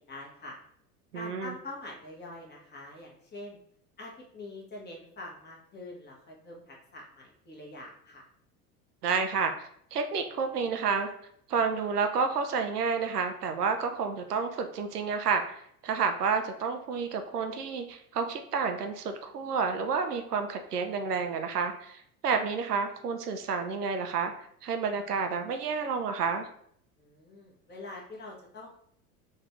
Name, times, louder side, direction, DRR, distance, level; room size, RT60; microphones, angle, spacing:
voice 1, 0.1-0.6 1.1-3.6 4.0-8.3 27.0-28.7, left 2 dB, 20° left, -2 dB, 1.2 m, -44 dB
voice 2, 1.1-1.5 9.0-11.1 11.5-24.3 24.6-26.5, right 5 dB, 85° right, 6 dB, 0.6 m, -30 dB
3.9 x 2.6 x 3.5 m, 0.67 s
figure-of-eight pair, 75°, 46 cm